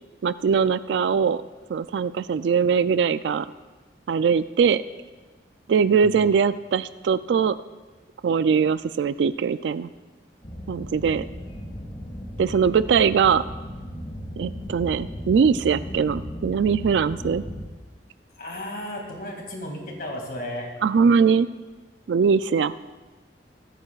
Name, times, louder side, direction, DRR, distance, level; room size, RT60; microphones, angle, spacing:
voice 1, 0.2-1.4 1.7-3.5 4.1-4.8 5.7-7.6 8.2-9.9 10.7-11.2 12.4-13.4 14.4-17.4 20.8-21.5 22.1-22.7, right 6 dB, 80° right, 14 dB, 0.3 m, -21 dB
sound 1, 10.4-17.6, equal, 35° left, 2.1 m, -36 dB
voice 2, 18.3-20.7, left 1 dB, 55° left, 1 dB, 2.3 m, -34 dB
21.5 x 9.1 x 2.4 m, 1.2 s
head